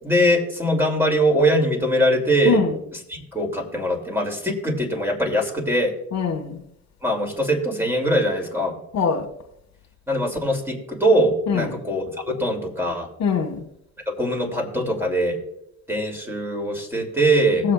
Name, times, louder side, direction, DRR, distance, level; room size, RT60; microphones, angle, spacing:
voice 1, 0.0-2.6 3.1-5.9 7.0-8.8 10.1-13.1 14.1-15.4 15.9-17.7, right 1 dB, 10° right, 2.9 m, -22 dB
voice 2, 6.1-6.6 8.9-9.3 11.5-11.7 13.2-13.7 17.6-17.7, left 6 dB, 65° left, 1.6 m, -22 dB
20.0 x 7.6 x 2.4 m
cardioid pair, 90°, 30 cm